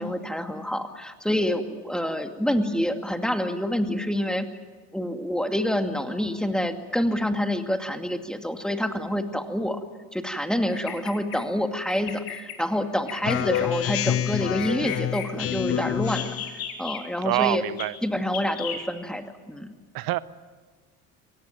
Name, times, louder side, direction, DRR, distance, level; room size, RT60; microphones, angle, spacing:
voice 1, 0.0-4.5 4.9-9.8 10.1-17.6 18.0-19.7, equal, ahead, 6 dB, 2.4 m, -27 dB
Bird vocalization bird call bird song, 10.7-11.4 11.9-12.6 13.1-13.7 14.3-15.3 16.1-17.0 17.8-17.9 18.3-18.8, left 8 dB, 50° left, 3.8 m, -35 dB
Speech synthesizer, 13.2-16.6, left 11 dB, 35° left, 0.6 m, -27 dB
voice 2, 17.2-17.9 19.9-20.2, right 16 dB, 55° right, 17 dB, 1.0 m, -25 dB
24.0 x 18.0 x 9.3 m, 1.4 s
hypercardioid pair, 70°, 44 cm